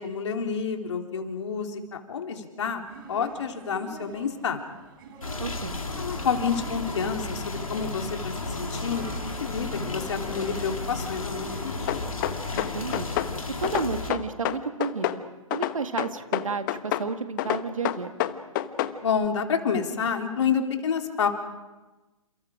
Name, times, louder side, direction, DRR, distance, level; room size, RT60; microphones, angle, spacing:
voice 1, 0.0-4.6 6.0-12.1 19.0-21.3, left 6 dB, 55° left, 4 dB, 3.5 m, -29 dB
sound 1, 2.9-13.2, right 4 dB, 40° right, 3.6 m, -46 dB
sound 2, 5.2-14.1, left 3 dB, 75° left, 3.1 m, -33 dB
voice 2, 5.4-5.8 12.6-13.1 13.6-15.2 15.5-18.1, right 5 dB, 70° right, 9 dB, 1.9 m, -31 dB
sound 3, 11.9-13.3 13.6-15.2 15.5-17.1 17.4-19.0, left 14 dB, 35° left, 1.2 m, -27 dB
29.5 x 28.0 x 5.0 m, 1.1 s
figure-of-eight pair, 120°, 18 cm